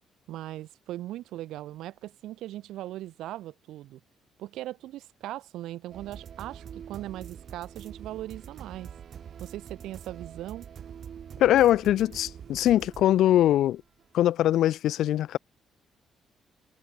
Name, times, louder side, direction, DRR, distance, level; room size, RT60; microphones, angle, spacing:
voice 1, 0.3-4.0 4.4-8.9 9.4-10.7, right 14 dB, 90° right, 2.0 m, -39 dB
sound 1, 5.9-14.0, right 8 dB, 45° right, 2.9 m, -45 dB
voice 2, 11.4-13.8 14.1-15.4, left 12 dB, 75° left, 0.4 m, -22 dB
cardioid pair, 155°, 0 cm